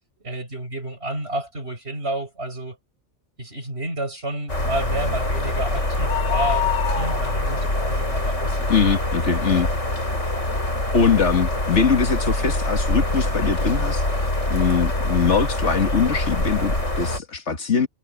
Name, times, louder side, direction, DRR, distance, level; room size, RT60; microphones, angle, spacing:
voice 1, 0.2-2.8 3.4-8.7, right 1 dB, 60° right, 8.1 m, -30 dB
sound 1, 4.5-17.2, left 2 dB, 90° left, 6.8 m, -24 dB
voice 2, 8.7-9.7 10.9-14.2 14.5-17.9, left 5 dB, 70° left, 2.1 m, -22 dB
omnidirectional pair, 1.2 m